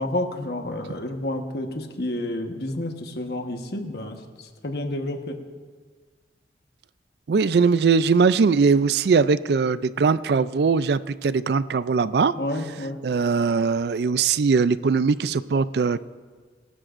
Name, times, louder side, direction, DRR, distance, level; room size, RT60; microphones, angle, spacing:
voice 1, 0.0-5.4 12.4-13.0, left 1 dB, 60° left, 4 dB, 1.3 m, -30 dB
voice 2, 7.3-12.3 13.0-16.0, right 5 dB, 60° right, 16 dB, 0.4 m, -20 dB
26.0 x 12.5 x 2.6 m, 1.5 s
head